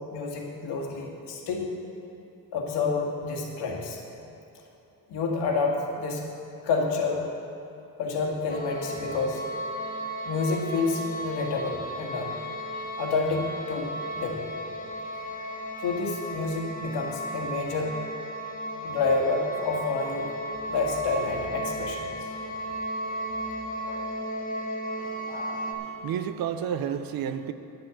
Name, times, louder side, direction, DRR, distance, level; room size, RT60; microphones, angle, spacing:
voice 1, 0.0-1.7 2.5-4.0 5.1-6.2 6.6-7.2 8.0-9.4 10.3-12.4 13.0-14.5 15.8-17.9 18.8-20.3 20.7-22.3 23.9-24.1 25.3-25.7, left 3 dB, 85° left, 0 dB, 1.9 m, -29 dB
sound 1, 8.5-25.7, right 1 dB, 20° left, 1.0 m, -35 dB
voice 2, 25.0-27.5, right 8 dB, 60° right, 10 dB, 0.6 m, -32 dB
10.5 x 7.7 x 7.1 m, 2.9 s
cardioid pair, 170°, 40 cm